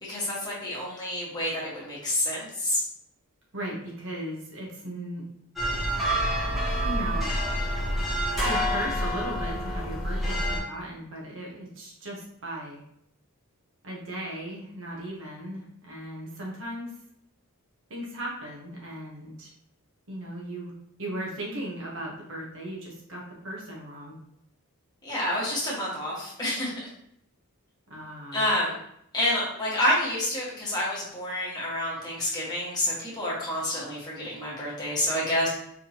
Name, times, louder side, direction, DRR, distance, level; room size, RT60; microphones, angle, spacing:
voice 1, 0.0-2.8 25.0-26.7 28.3-28.8 29.1-35.5, left 1 dB, 20° left, -7 dB, 1.5 m, -28 dB
voice 2, 3.5-5.3 6.8-7.4 8.4-12.8 13.8-16.9 17.9-19.5 20.1-20.7 21.0-24.2 27.9-28.5, right 1 dB, 60° right, -3 dB, 1.2 m, -37 dB
sound 1, 5.6-10.6, equal, ahead, 1.1 m, -27 dB
4.6 x 3.5 x 2.9 m, 0.73 s
head